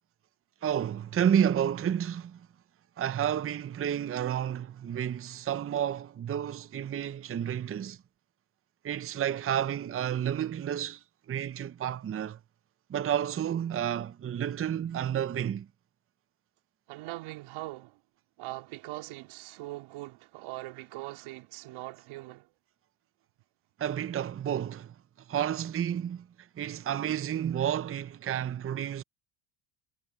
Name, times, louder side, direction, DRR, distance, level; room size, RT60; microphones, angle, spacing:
voice 1, 0.6-2.5 3.0-8.0 8.8-12.4 12.9-15.7 23.8-24.9 25.3-29.0, right 9 dB, 25° right, 0.7 m, -31 dB
voice 2, 16.9-18.0 18.4-22.5, right 19 dB, 75° right, 3.8 m, -41 dB
supercardioid pair, 90°, 49 cm